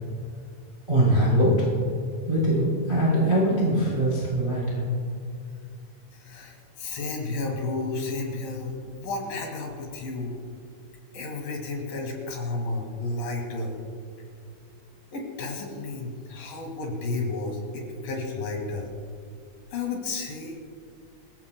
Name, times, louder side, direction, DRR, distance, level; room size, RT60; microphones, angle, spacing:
voice 1, 0.9-1.5 2.3-4.8, right 1 dB, 15° right, -7 dB, 3.1 m, -22 dB
voice 2, 6.1-10.4 11.1-13.8 15.1-18.9 19.7-20.6, left 3 dB, 70° left, 1 dB, 3.7 m, -32 dB
25.0 x 14.5 x 2.2 m, 2.3 s
omnidirectional pair, 4.3 m